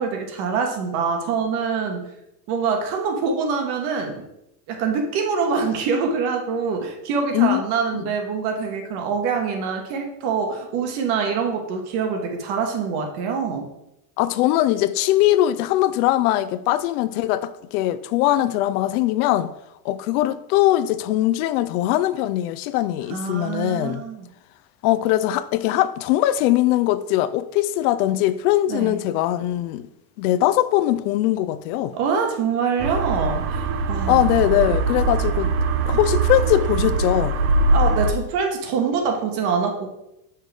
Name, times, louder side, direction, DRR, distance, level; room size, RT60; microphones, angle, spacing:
voice 1, 0.0-2.1 2.5-4.2 4.7-13.6 23.1-24.3 28.7-28.9 31.9-34.4 37.7-39.9, right 5 dB, 55° right, 1.4 m, -25 dB
voice 2, 14.2-19.5 19.8-24.0 24.8-29.9 30.2-31.9 34.1-35.5 35.9-37.4, left 14 dB, 70° left, 0.6 m, -21 dB
sound 1, 32.8-38.1, right 3 dB, 30° right, 0.5 m, -22 dB
6.5 x 5.7 x 3.4 m
supercardioid pair, 145°, 46 cm